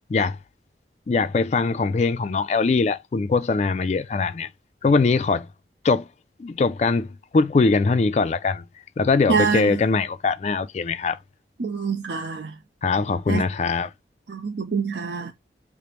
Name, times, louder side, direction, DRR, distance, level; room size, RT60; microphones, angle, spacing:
voice 1, 1.1-4.5 4.8-5.5 5.8-6.1 6.4-8.7 9.0-11.2 12.8-13.9, left 4 dB, 40° left, 0.3 m, -22 dB
voice 2, 9.3-9.7 11.6-12.5 13.3-13.4 14.3-15.3, right 5 dB, 70° right, 0.5 m, -25 dB
4.9 x 2.0 x 2.9 m
head